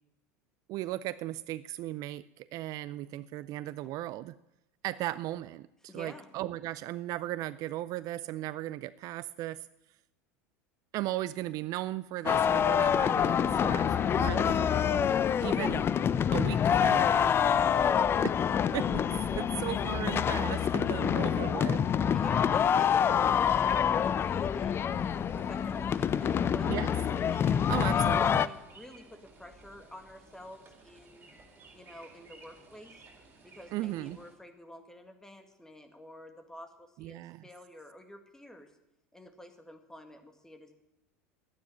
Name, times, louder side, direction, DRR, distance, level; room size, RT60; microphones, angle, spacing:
voice 1, 0.7-4.4 4.8-9.7 10.9-14.7 15.4-15.9 16.3-17.3 18.7-21.8 26.7-26.9 27.7-28.5 33.7-34.2 37.0-37.4, right 15 dB, 50° right, 17 dB, 0.4 m, -37 dB
voice 2, 5.9-6.3 13.8-14.2 17.7-18.1 22.1-25.0 25.3-26.9 27.3-31.3 31.7-33.0 33.4-38.7 39.1-40.7, left 1 dB, 5° left, 6 dB, 2.0 m, -49 dB
sound 1, 12.3-28.5, left 8 dB, 30° left, 0.5 m, -26 dB
sound 2, 24.8-34.3, right 3 dB, 25° right, 4.2 m, -56 dB
12.0 x 9.4 x 9.0 m, 0.89 s
hypercardioid pair, 85°, 8 cm